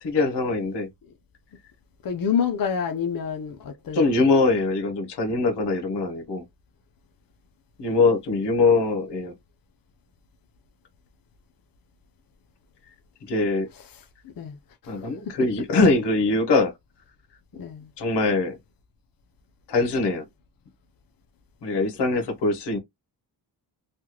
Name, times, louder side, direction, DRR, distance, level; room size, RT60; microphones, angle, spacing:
voice 1, 0.0-0.9 3.9-6.4 7.8-9.3 13.3-13.7 14.9-16.7 17.5-17.6 18.0-18.6 19.7-20.2 21.6-22.8, left 3 dB, 80° left, 1.1 m, -22 dB
voice 2, 2.0-4.1 13.7-13.9 14.4-14.6 14.8-15.0 15.4-15.7 17.6-17.9, left 7 dB, 55° left, 0.7 m, -28 dB
3.3 x 2.3 x 3.0 m
cardioid pair, 85°, 41 cm